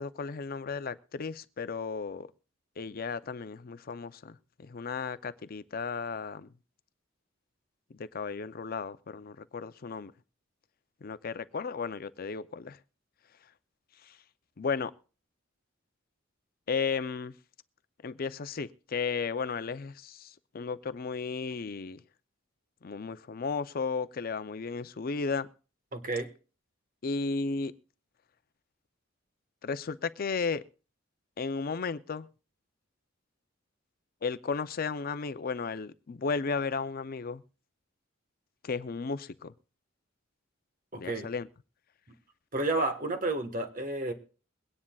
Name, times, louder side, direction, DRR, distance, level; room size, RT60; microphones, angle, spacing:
voice 1, 0.0-2.3 2.8-6.5 7.9-10.1 11.0-12.8 14.1-14.2 14.6-14.9 16.7-17.3 18.0-22.0 22.8-25.5 27.0-27.7 29.6-30.6 31.4-32.3 34.2-37.4 38.6-39.5 40.9-41.5, left 5 dB, 45° left, 0.5 m, -34 dB
voice 2, 25.9-26.3 40.9-41.3 42.5-44.1, right 2 dB, 45° right, 1.4 m, -31 dB
22.5 x 9.7 x 2.3 m
head